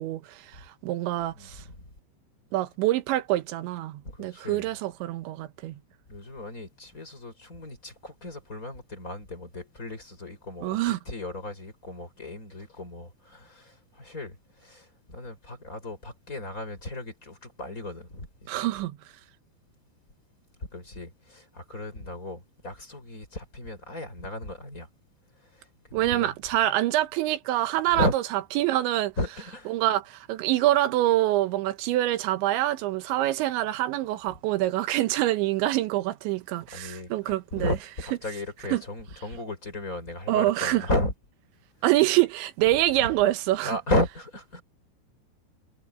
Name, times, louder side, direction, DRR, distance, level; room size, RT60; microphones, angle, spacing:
voice 1, 0.0-1.6 2.5-5.8 10.6-11.0 18.5-19.0 25.9-28.2 28.6-29.1 29.7-37.8 38.7-38.8 40.3-40.9 41.8-43.8, right 15 dB, 85° right, 3.3 m, -25 dB
voice 2, 1.3-1.8 4.0-4.7 6.1-14.4 14.6-18.5 20.7-24.9 25.9-26.3 27.9-28.1 29.2-29.7 36.7-41.1 43.6-44.6, left 1 dB, 15° left, 5.9 m, -34 dB
omnidirectional pair, 5.3 m